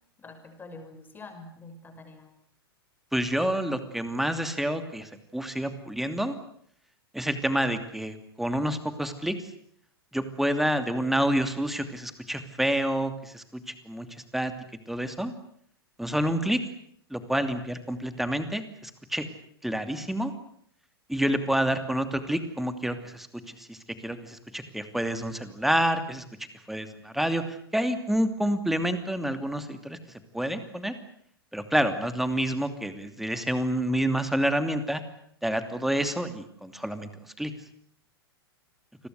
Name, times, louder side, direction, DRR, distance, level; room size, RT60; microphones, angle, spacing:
voice 1, 0.2-2.3, left 3 dB, 15° left, 6 dB, 6.2 m, -46 dB
voice 2, 3.1-6.4 7.1-9.4 10.1-14.1 14.3-14.5 14.9-15.3 16.0-16.6 17.1-19.3 19.6-20.3 21.1-26.2 26.7-30.0 30.3-30.9 31.5-35.0 35.4-37.5, right 1 dB, ahead, 10 dB, 2.7 m, -28 dB
29.5 x 21.5 x 8.2 m, 0.65 s
figure-of-eight pair, 100°, 13 cm